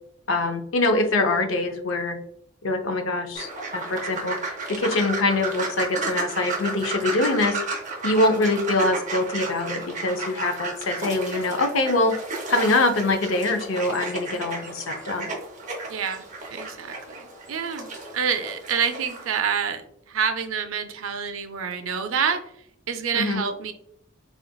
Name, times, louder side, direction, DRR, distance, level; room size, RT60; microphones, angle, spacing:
voice 1, 0.3-2.2 2.6-7.6 8.0-12.1 12.5-15.3 23.1-23.4, left 2 dB, 75° left, 6 dB, 0.6 m, -24 dB
sound 1, 3.3-19.4, right 3 dB, 40° right, 0.7 m, -33 dB
voice 2, 15.9-16.2 16.5-17.9 18.1-22.4 22.9-23.7, right 6 dB, 85° right, 7 dB, 0.5 m, -27 dB
4.3 x 2.4 x 2.2 m, 0.71 s
head